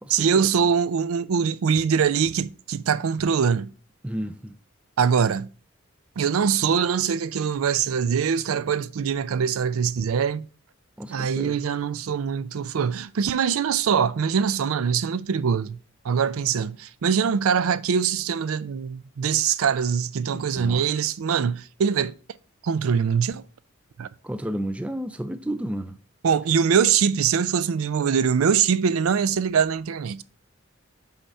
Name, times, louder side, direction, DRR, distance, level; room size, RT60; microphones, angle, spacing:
voice 1, 0.1-3.7 5.0-5.5 6.2-10.5 11.1-15.8 16.0-22.1 22.6-23.4 24.0-24.1 26.2-30.2, right 7 dB, 90° right, 0.4 m, -23 dB
voice 2, 4.0-4.5 11.0-11.6 20.3-20.8 24.2-25.9, right 1 dB, 5° right, 0.3 m, -32 dB
5.8 x 4.2 x 5.3 m
head